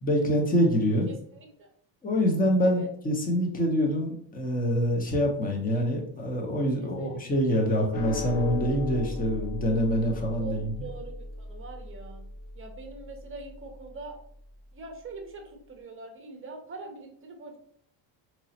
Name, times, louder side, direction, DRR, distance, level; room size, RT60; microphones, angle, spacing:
voice 1, 0.0-1.1 2.0-10.7, equal, 15° left, 1 dB, 0.8 m, -25 dB
voice 2, 1.1-1.7 2.6-2.9 6.8-8.1 10.4-12.2 12.6-14.2 14.7-17.6, right 4 dB, 25° right, 4 dB, 0.8 m, -43 dB
sound 1, 7.9-14.5, left 3 dB, 90° left, 1.0 m, -37 dB
3.8 x 3.1 x 2.8 m, 0.66 s
cardioid pair, 115°, 50 cm